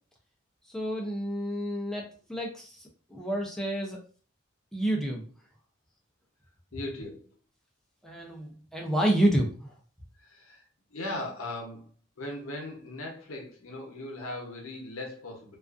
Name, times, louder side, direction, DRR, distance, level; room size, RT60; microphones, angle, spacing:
voice 1, 0.7-4.0 4.7-5.2 8.0-9.7, right 1 dB, ahead, -1 dB, 0.4 m, -29 dB
voice 2, 6.7-7.3 10.2-10.6 10.9-11.9 12.2-15.6, left 1 dB, 85° left, 1 dB, 0.7 m, -38 dB
2.4 x 2.3 x 2.3 m, 0.41 s
head